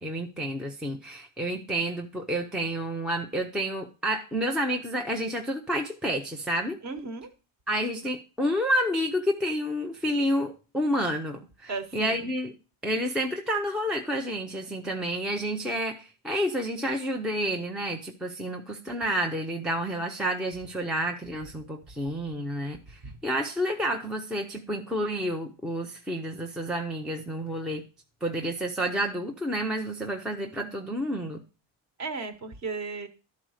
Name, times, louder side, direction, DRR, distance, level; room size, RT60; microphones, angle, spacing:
voice 1, 0.0-6.8 7.7-12.5 12.8-27.8 28.2-31.4, equal, ahead, 2 dB, 0.4 m, -30 dB
voice 2, 6.8-7.3 11.7-12.3 23.0-23.2 32.0-33.1, right 4 dB, 35° right, 9 dB, 1.0 m, -35 dB
11.5 x 4.1 x 6.2 m, 0.33 s
cardioid pair, 165°, 49 cm